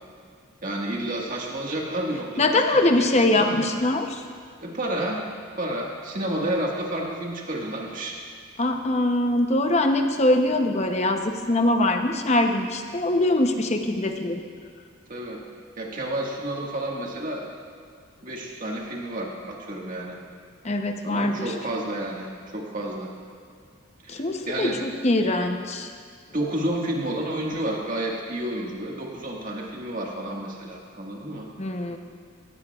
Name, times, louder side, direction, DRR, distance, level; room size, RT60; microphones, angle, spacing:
voice 1, 0.6-3.8 4.6-5.3 5.6-8.1 15.1-15.4 15.8-17.5 18.2-20.2 21.0-23.1 24.0-24.8 26.3-31.5, right 1 dB, 40° right, -2 dB, 1.7 m, -30 dB
voice 2, 2.4-4.2 8.6-14.4 20.6-21.5 24.1-25.9 31.6-32.0, left 1 dB, 30° left, 5 dB, 0.8 m, -23 dB
17.0 x 15.5 x 2.4 m, 2.2 s
head